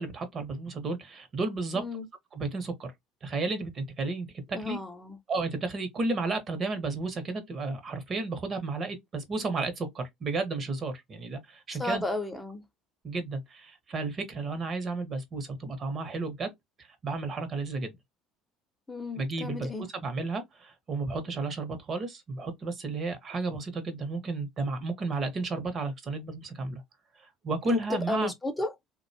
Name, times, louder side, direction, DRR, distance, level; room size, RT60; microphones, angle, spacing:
voice 1, 0.0-1.8 2.3-2.9 3.2-4.8 5.3-12.0 13.0-16.5 16.8-18.0 19.1-26.8 27.2-28.3, right 3 dB, 40° right, 0.8 m, -33 dB
voice 2, 1.7-2.1 4.5-5.2 11.8-12.6 18.9-19.9 27.7-28.7, left 2 dB, 10° left, 0.5 m, -33 dB
2.5 x 2.2 x 2.6 m
supercardioid pair, 90°, 0 cm